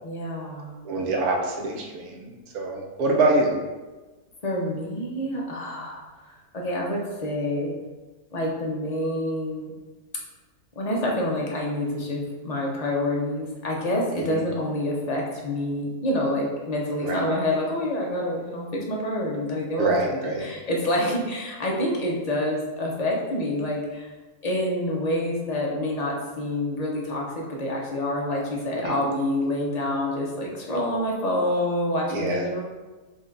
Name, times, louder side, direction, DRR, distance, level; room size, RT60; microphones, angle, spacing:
voice 1, 0.0-0.9 4.4-6.0 6.5-7.7 8.3-9.7 10.8-20.0 20.2-24.1 24.4-32.6, left 1 dB, 40° left, -2 dB, 0.6 m, -27 dB
voice 2, 0.8-3.5 14.1-14.4 17.0-17.2 19.8-20.5 28.8-28.9 32.1-32.5, right 2 dB, 75° right, 0 dB, 1.2 m, -25 dB
5.1 x 2.4 x 3.8 m, 1.2 s
omnidirectional pair, 1.6 m